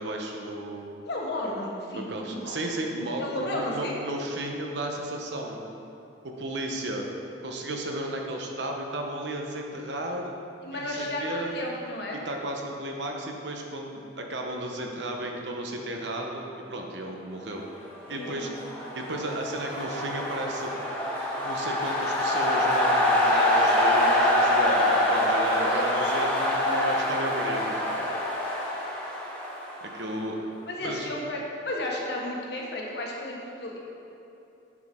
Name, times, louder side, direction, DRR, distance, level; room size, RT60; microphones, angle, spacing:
voice 1, 0.0-0.9 1.9-3.2 3.5-5.6 6.2-7.1 7.4-10.3 10.7-11.5 12.2-17.6 18.1-18.5 18.9-20.7 21.4-28.0 29.8-30.4 30.8-31.1, right 1 dB, 70° right, 1 dB, 1.0 m, -34 dB
voice 2, 1.0-2.6 3.2-4.0 10.6-12.2 18.1-18.6 25.6-26.2 28.0-28.5 30.7-33.8, left 1 dB, 60° left, -2 dB, 1.3 m, -33 dB
sound 1, 18.3-30.2, left 1 dB, 10° left, 1.3 m, -25 dB
9.5 x 6.1 x 3.7 m, 3.0 s
head